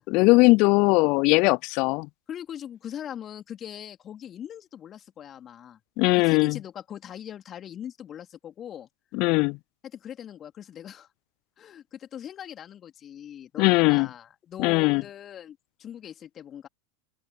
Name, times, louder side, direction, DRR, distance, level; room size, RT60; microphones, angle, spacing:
voice 1, 0.0-2.1 6.0-6.6 9.1-9.6 13.6-14.1 14.6-15.0, left 26 dB, 55° left, 0.4 m, -20 dB
voice 2, 2.3-5.8 6.1-8.9 9.9-11.1 11.6-16.7, left 10 dB, 35° left, 3.4 m, -41 dB
open air
hypercardioid pair, 90°, 0 cm